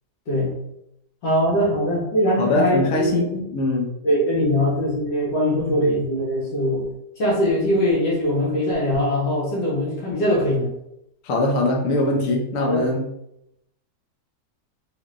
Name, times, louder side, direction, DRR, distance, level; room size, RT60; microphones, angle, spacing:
voice 1, 1.2-3.4 4.0-6.8 7.2-10.7 12.7-12.8, equal, 80° left, -6 dB, 1.7 m, -21 dB
voice 2, 2.4-3.3 3.5-3.9 11.2-13.0, left 2 dB, 60° left, 0 dB, 0.9 m, -21 dB
3.5 x 3.2 x 2.4 m, 0.81 s
omnidirectional pair, 1.9 m